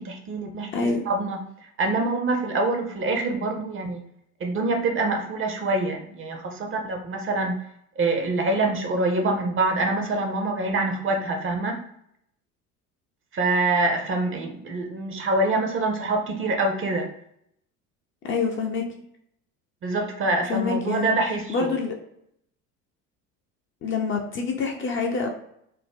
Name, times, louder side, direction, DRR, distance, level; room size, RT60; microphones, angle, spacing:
voice 1, 0.0-1.4 1.8-4.0 4.4-7.6 8.0-11.8 13.3-17.1 19.8-21.7, right 2 dB, 30° right, 3 dB, 0.6 m, -25 dB
voice 2, 0.7-1.0 18.3-18.9 20.5-21.2 21.5-22.0 23.8-25.3, left 4 dB, 30° left, 1 dB, 0.5 m, -26 dB
2.7 x 2.0 x 3.5 m, 0.72 s
hypercardioid pair, 65°, 43 cm